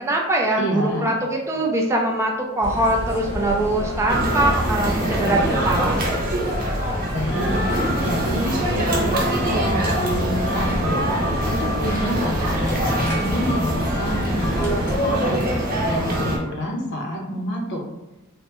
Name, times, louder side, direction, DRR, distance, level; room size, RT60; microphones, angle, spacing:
voice 1, 0.0-6.0, right 1 dB, 15° right, 0 dB, 0.3 m, -22 dB
voice 2, 0.6-1.1 7.1-7.6 8.0-11.0 11.5-15.4 15.8-17.8, equal, 55° left, 0 dB, 0.7 m, -27 dB
sound 1, 2.6-15.0, equal, 10° left, 0.8 m, -30 dB
sound 2, 4.1-16.4, right 1 dB, 40° right, 0.7 m, -24 dB
Engine, 7.5-14.5, right 1 dB, 75° right, 0.5 m, -37 dB
3.3 x 2.1 x 2.9 m, 0.99 s
head